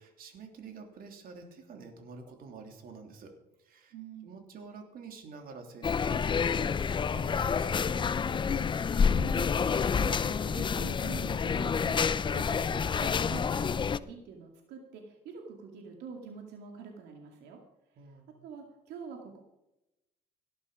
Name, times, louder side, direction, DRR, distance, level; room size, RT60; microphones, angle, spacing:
voice 1, 0.0-3.9 4.2-8.1 18.0-18.3, right 4 dB, 60° right, 4 dB, 3.2 m, -48 dB
voice 2, 3.9-4.4 9.0-17.6 18.4-19.4, right 6 dB, 80° right, 2 dB, 2.4 m, -46 dB
sound 1, 5.8-14.0, left 6 dB, 30° left, 0.6 m, -28 dB
18.0 x 11.0 x 5.0 m, 0.91 s
cardioid pair, 110°, 17 cm